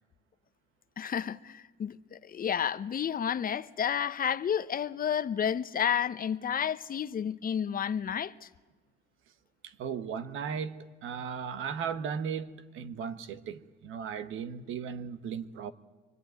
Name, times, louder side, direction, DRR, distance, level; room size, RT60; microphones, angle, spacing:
voice 1, 1.0-8.5, left 8 dB, 45° left, 0.8 m, -31 dB
voice 2, 9.6-15.7, right 7 dB, 85° right, 1.3 m, -36 dB
25.5 x 23.0 x 9.3 m
cardioid pair, 90°, 20 cm